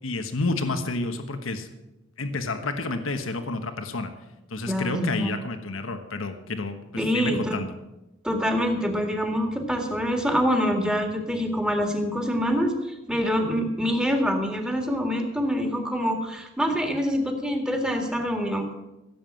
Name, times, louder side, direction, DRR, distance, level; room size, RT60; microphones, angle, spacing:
voice 1, 0.0-1.7 2.2-4.1 4.5-7.7, left 3 dB, 75° left, 7 dB, 1.3 m, -30 dB
voice 2, 4.7-5.4 7.0-7.6 8.2-12.7 13.1-18.7, equal, 5° right, 3 dB, 2.0 m, -25 dB
16.0 x 7.5 x 7.5 m, 0.97 s
head